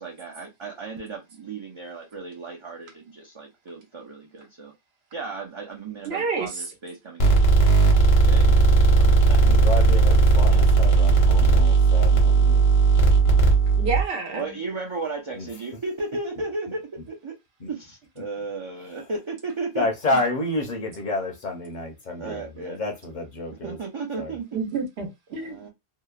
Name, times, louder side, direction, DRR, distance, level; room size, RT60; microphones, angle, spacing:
voice 1, 0.0-4.7 5.1-8.5 8.9-9.4 10.5-10.6 11.3-11.5 14.3-17.4 17.7-20.2 22.2-22.8 23.6-24.6 25.4-25.7, right 3 dB, 45° right, 0.4 m, -35 dB
voice 2, 6.0-6.6 13.8-14.6 24.5-25.6, right 4 dB, 80° right, 1.1 m, -29 dB
sound 1, 7.2-14.0, right 3 dB, 70° left, 1.1 m, -17 dB
voice 3, 9.4-12.6 15.4-15.5 17.6-17.7 19.8-23.8 24.2-24.3, left 2 dB, 50° left, 0.7 m, -29 dB
2.8 x 2.1 x 2.3 m
omnidirectional pair, 1.1 m